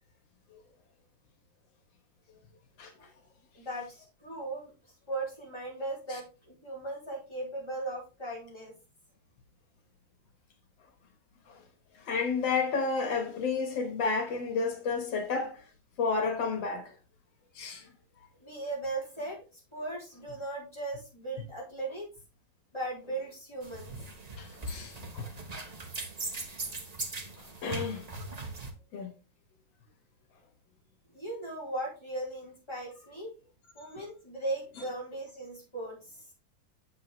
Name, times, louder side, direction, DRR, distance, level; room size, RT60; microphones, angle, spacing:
voice 1, 3.5-4.7 5.1-8.7 18.4-19.4 19.7-22.1 22.7-23.9 31.1-33.3 33.7-36.1, right 2 dB, 15° left, 4.2 m, -37 dB
voice 2, 12.1-15.6 16.0-16.9 17.6-17.8 24.4-25.3 27.6-28.0 28.9-29.1, left 4 dB, 90° left, 2.1 m, -31 dB
sound 1, 23.6-28.7, right 2 dB, 25° right, 0.9 m, -39 dB
8.3 x 6.7 x 3.1 m
omnidirectional pair, 2.0 m